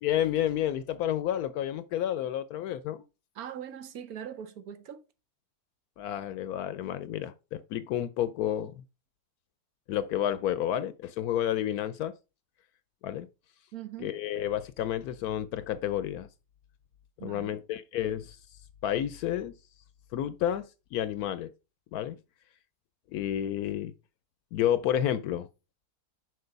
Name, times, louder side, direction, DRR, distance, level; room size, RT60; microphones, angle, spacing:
voice 1, 0.0-3.0 6.0-8.8 9.9-12.1 13.0-13.3 14.0-16.3 17.2-18.4 18.8-19.5 20.1-21.5 21.9-22.2 23.1-23.9 24.5-25.5, left 11 dB, 75° left, 1.0 m, -30 dB
voice 2, 3.3-5.0 13.7-14.1 17.2-17.6, right 9 dB, 70° right, 1.3 m, -41 dB
6.6 x 4.5 x 5.2 m
omnidirectional pair, 1.6 m